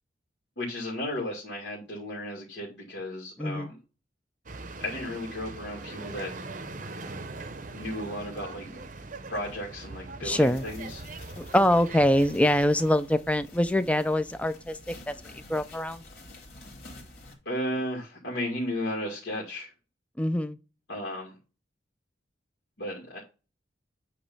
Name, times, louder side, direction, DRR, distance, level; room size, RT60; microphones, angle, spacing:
voice 1, 0.6-3.8 4.8-6.3 7.7-8.8 9.3-11.0 17.5-19.7 20.9-21.4 22.8-23.2, left 1 dB, 70° left, 2.3 m, -34 dB
voice 2, 3.4-3.7 10.2-10.7 11.4-15.1 15.5-16.0 20.2-20.6, left 1 dB, 5° left, 0.4 m, -24 dB
sound 1, 4.5-12.9, right 3 dB, 45° right, 0.7 m, -41 dB
sound 2, 10.3-17.3, left 2 dB, 55° left, 2.5 m, -49 dB
8.7 x 3.1 x 5.4 m
head